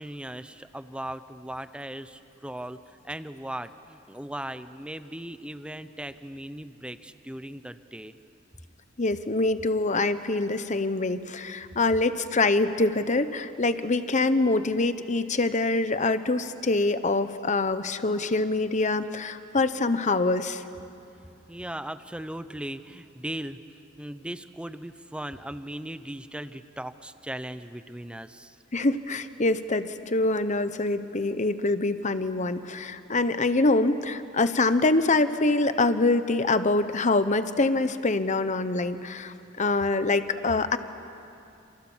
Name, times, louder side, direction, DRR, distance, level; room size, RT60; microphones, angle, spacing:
voice 1, 0.0-8.1 21.4-23.6 24.0-28.6, right 1 dB, 5° right, 12 dB, 0.8 m, -38 dB
voice 2, 9.0-20.6 28.7-40.8, left 2 dB, 40° left, 11 dB, 1.0 m, -25 dB
28.5 x 27.5 x 7.4 m, 2.7 s
head